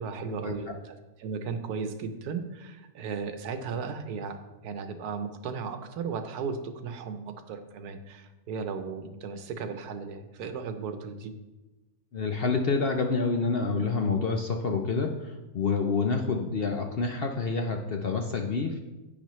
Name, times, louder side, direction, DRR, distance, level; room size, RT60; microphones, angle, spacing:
voice 1, 0.0-4.4 4.6-11.3, right 5 dB, 90° right, 8 dB, 1.3 m, -36 dB
voice 2, 12.1-18.8, left 4 dB, 55° left, 3 dB, 0.6 m, -28 dB
10.0 x 8.5 x 3.1 m, 1.1 s
omnidirectional pair, 1.6 m